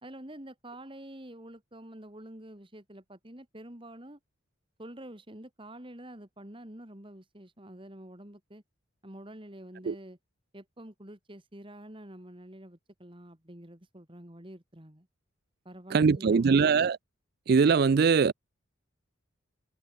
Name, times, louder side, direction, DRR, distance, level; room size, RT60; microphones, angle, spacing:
voice 1, 0.0-4.2 4.8-8.6 9.0-10.2 10.5-15.1 15.6-16.7, right 1 dB, 25° right, 2.6 m, -47 dB
voice 2, 15.9-17.0 17.5-18.3, right 5 dB, 50° right, 0.4 m, -22 dB
head